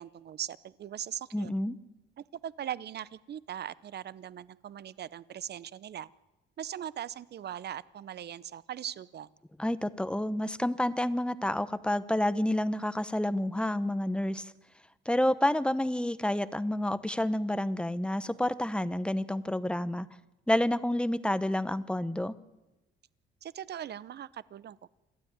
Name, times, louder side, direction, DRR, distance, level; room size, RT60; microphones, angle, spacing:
voice 1, 0.0-1.5 2.4-6.1 6.6-9.3 23.4-24.9, right 10 dB, 55° right, 19 dB, 0.8 m, -40 dB
voice 2, 1.3-1.7 9.6-14.5 15.1-20.1 20.5-22.3, left 1 dB, 5° left, 14 dB, 1.0 m, -29 dB
28.0 x 12.5 x 9.6 m, 1.0 s
cardioid pair, 90°, 20 cm